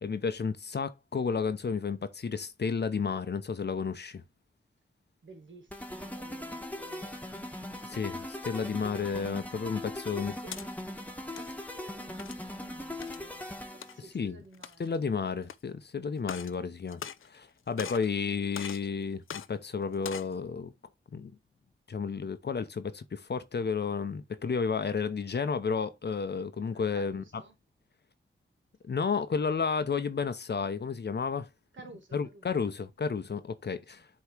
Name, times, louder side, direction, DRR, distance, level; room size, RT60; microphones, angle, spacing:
voice 1, 0.0-4.2 7.8-10.3 14.1-14.4 14.8-20.7 21.1-21.4 21.9-27.2 28.8-31.5 32.1-34.1, left 5 dB, 55° left, 0.9 m, -32 dB
voice 2, 5.2-7.2 9.8-10.7 11.3-15.3 26.7-27.6 31.7-32.6 33.9-34.0, right 3 dB, 70° right, 2.1 m, -54 dB
sound 1, 5.7-14.0, left 1 dB, 5° left, 1.4 m, -40 dB
sound 2, 10.5-10.7 11.2-11.5 12.2-12.5 13.0-13.3 13.8-13.9 14.5-15.0 15.5-15.6 16.2-16.6 16.9-17.5 17.8-18.1 18.5-18.9 19.3-19.5 19.9-20.3, left 8 dB, 85° left, 0.5 m, -41 dB
8.3 x 3.2 x 4.5 m
wide cardioid pair, 75°, 20 cm